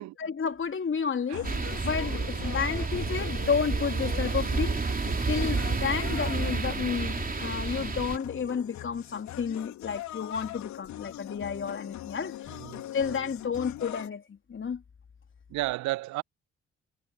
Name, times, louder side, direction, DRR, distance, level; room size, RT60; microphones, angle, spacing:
voice 1, 0.0-1.5 1.8-4.8 5.3-12.6 12.9-14.8, left 6 dB, 35° left, 3.5 m, -31 dB
sound 1, 1.3-14.1, left 14 dB, 60° left, 4.2 m, -42 dB
sound 2, 1.4-8.2, right 4 dB, 25° right, 3.5 m, -30 dB
voice 2, 5.6-6.2 12.5-13.3 15.5-16.2, right 18 dB, 60° right, 1.2 m, -35 dB
figure-of-eight pair, 40°, 33 cm